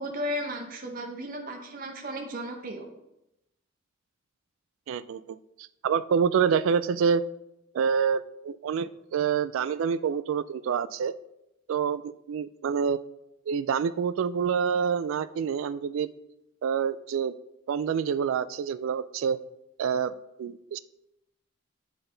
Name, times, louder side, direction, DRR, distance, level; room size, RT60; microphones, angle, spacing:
voice 1, 0.0-2.9, equal, 40° right, 2 dB, 0.8 m, -34 dB
voice 2, 4.9-5.4 5.8-7.2 7.7-11.1 11.7-13.0 13.5-16.1 16.6-17.3 17.7-19.4 19.8-20.8, right 7 dB, 70° right, 15 dB, 0.3 m, -27 dB
8.7 x 4.1 x 3.8 m, 0.84 s
head